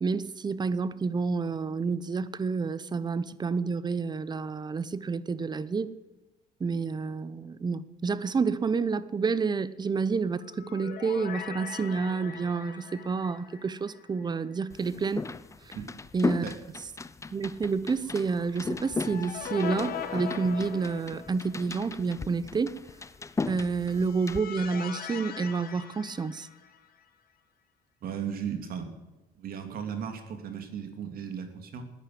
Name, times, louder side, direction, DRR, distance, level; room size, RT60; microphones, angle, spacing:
voice 1, 0.0-5.9 6.6-15.3 16.1-16.4 17.3-22.7 23.5-26.5, right 4 dB, 25° right, 0.8 m, -29 dB
sound 1, 10.3-14.6 14.9-15.0 18.5-21.6 23.7-27.0, left 8 dB, 60° left, 2.0 m, -41 dB
sound 2, 14.7-24.4, left 4 dB, 15° left, 0.6 m, -37 dB
voice 2, 28.0-28.9 29.4-31.8, right 7 dB, 60° right, 2.7 m, -36 dB
14.5 x 10.0 x 7.8 m
cardioid pair, 110°, 17 cm